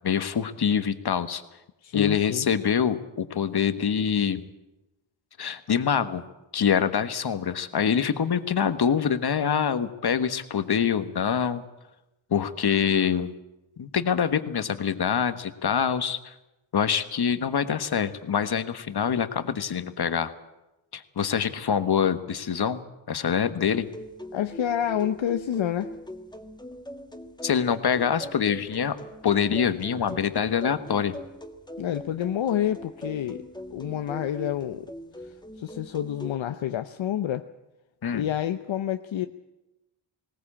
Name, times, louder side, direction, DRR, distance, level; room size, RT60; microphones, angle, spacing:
voice 1, 0.0-1.4 1.9-4.4 5.4-6.2 6.5-11.6 12.3-13.3 13.8-16.3 16.7-20.3 20.9-22.8 23.1-23.9 27.4-29.0 29.2-31.1 38.0-38.3, left 7 dB, 50° left, 11 dB, 1.4 m, -25 dB
voice 2, 1.8-2.5 24.3-25.9 31.8-33.4 33.7-34.9 35.2-37.5 38.1-39.3, left 10 dB, 70° left, 9 dB, 0.8 m, -28 dB
sound 1, 23.7-36.3, equal, 10° left, 1.7 m, -41 dB
19.5 x 18.5 x 8.7 m, 0.98 s
cardioid pair, 90°, 48 cm